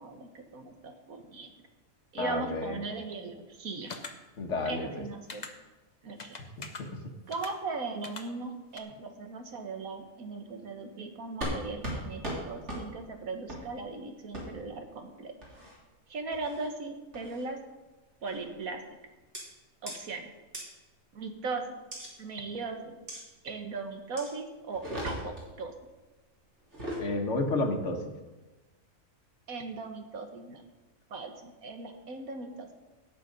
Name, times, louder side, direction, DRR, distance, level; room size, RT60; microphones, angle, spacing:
voice 1, 0.0-1.5 2.1-4.2 4.7-5.5 6.0-6.4 7.3-15.3 16.1-17.6 18.2-18.8 19.8-20.3 21.1-21.7 22.2-23.0 23.4-25.7 29.5-30.6 31.1-32.7, right 3 dB, 80° right, 5 dB, 1.8 m, -38 dB
voice 2, 2.2-2.8 4.4-5.0 6.6-7.0 27.0-28.0, left 2 dB, 55° left, 5 dB, 1.6 m, -31 dB
sound 1, 3.9-4.1 5.3-5.5 6.2-6.8 7.3-7.5 8.0-8.2 8.8-8.9, left 4 dB, 35° left, 1.0 m, -41 dB
sound 2, 11.4-11.6 11.8-12.0 12.2-12.4 12.7-12.8 13.5-13.6 14.3-14.4 15.4-15.8 16.3-16.7 17.1-17.4 18.3-18.5 19.3-19.4 19.9-20.0 20.5-20.6 21.9-22.1 23.1-23.2 24.2-24.3 24.7-25.5 26.6-27.0, equal, 55° right, 3.5 m, -37 dB
17.5 x 6.9 x 5.3 m, 1.2 s
omnidirectional pair, 1.5 m